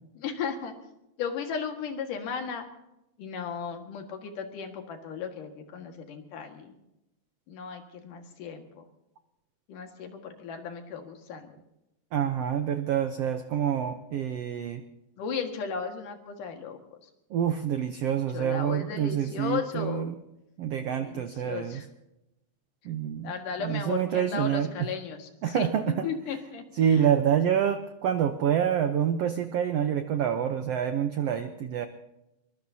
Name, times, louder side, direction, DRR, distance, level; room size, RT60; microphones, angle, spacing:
voice 1, 0.2-0.9 1.2-2.7 3.2-6.8 7.5-8.8 9.7-11.5 15.2-16.8 18.3-20.1 21.0-21.9 23.2-27.1, left 6 dB, 65° left, 5 dB, 3.3 m, -35 dB
voice 2, 12.1-14.8 17.3-20.1 20.6-21.8 22.8-23.3 23.6-24.7 25.4-26.1 26.7-31.9, right 9 dB, 80° right, 8 dB, 1.4 m, -27 dB
23.5 x 22.0 x 2.8 m, 0.90 s
omnidirectional pair, 4.0 m